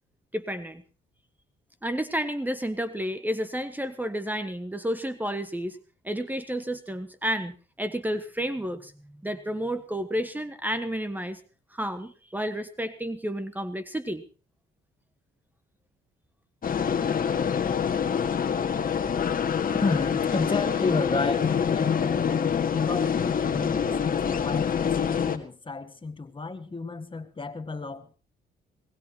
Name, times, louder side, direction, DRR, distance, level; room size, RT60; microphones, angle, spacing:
voice 1, 0.3-0.8 1.8-5.8 6.0-8.9 9.2-11.4 11.7-14.2, equal, 10° right, 1.4 m, -31 dB
sound 1, 16.6-25.4, left 7 dB, 45° left, 1.9 m, -26 dB
voice 2, 19.7-22.3 22.7-28.1, left 3 dB, 25° left, 1.8 m, -31 dB
21.5 x 19.5 x 3.0 m
cardioid pair, 90°, 20 cm